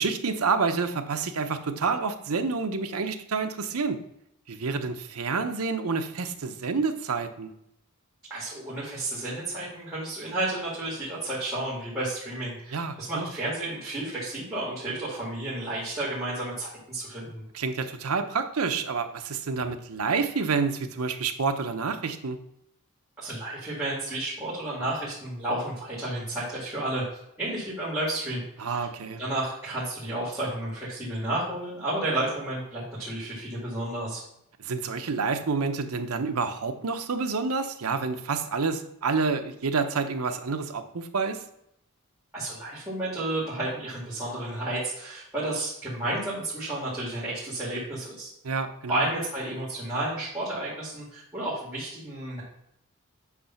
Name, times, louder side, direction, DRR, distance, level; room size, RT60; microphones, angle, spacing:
voice 1, 0.0-4.0 4.5-7.5 12.7-13.3 17.5-22.4 28.6-29.2 34.6-41.4 48.4-49.0, right 4 dB, 80° right, 7 dB, 0.8 m, -28 dB
voice 2, 8.3-17.5 23.2-27.0 27.4-28.8 29.2-34.2 42.3-48.3 48.9-52.4, right 1 dB, 10° right, -9 dB, 2.2 m, -32 dB
8.4 x 3.1 x 5.7 m, 0.78 s
head